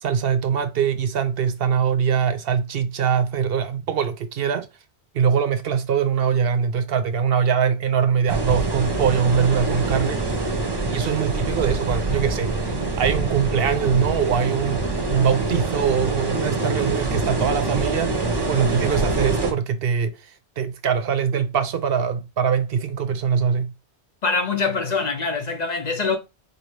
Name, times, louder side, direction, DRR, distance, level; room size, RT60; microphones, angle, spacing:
voice 1, 0.0-4.7 5.1-10.2 10.9-18.1 18.5-23.7, right 7 dB, 65° right, 0.8 m, -22 dB
sound 1, 8.3-19.5, right 3 dB, 25° right, 0.7 m, -25 dB
voice 2, 24.2-26.2, left 4 dB, 50° left, 0.6 m, -24 dB
4.2 x 2.7 x 3.2 m
omnidirectional pair, 1.1 m